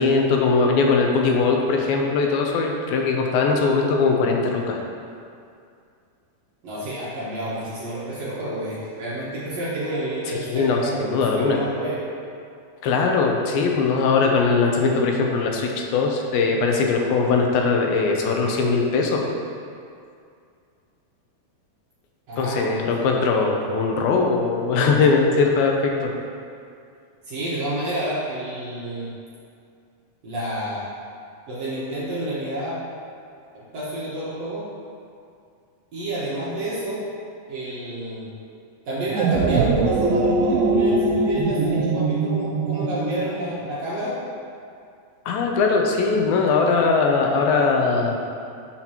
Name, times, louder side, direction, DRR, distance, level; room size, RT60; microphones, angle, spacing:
voice 1, 0.0-4.8 10.3-11.6 12.8-19.2 22.4-26.1 45.3-48.2, left 4 dB, 80° left, 1 dB, 2.5 m, -20 dB
voice 2, 6.6-12.0 22.3-23.0 27.2-29.1 30.2-30.9 31.5-32.8 33.5-34.7 35.9-37.0 37.5-38.3 38.9-44.2, right 1 dB, 55° right, -9 dB, 2.1 m, -29 dB
sound 1, 39.0-43.6, right 3 dB, 90° right, 2.5 m, -22 dB
12.0 x 5.8 x 2.9 m, 2.4 s
omnidirectional pair, 4.3 m